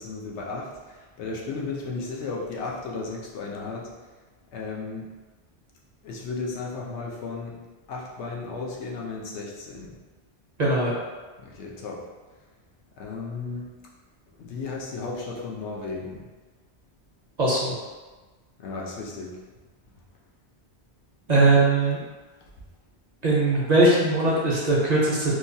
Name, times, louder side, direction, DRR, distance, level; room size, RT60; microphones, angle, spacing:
voice 1, 0.0-3.9 4.5-5.1 6.0-7.6 7.9-10.0 11.4-12.0 13.0-13.7 14.4-16.3 18.6-19.4, left 3 dB, 85° left, -2 dB, 0.9 m, -34 dB
voice 2, 10.6-10.9 17.4-17.7 21.3-22.0 23.2-25.3, right 2 dB, 50° right, -6 dB, 0.6 m, -20 dB
2.9 x 2.2 x 2.5 m, 1.3 s
omnidirectional pair, 1.1 m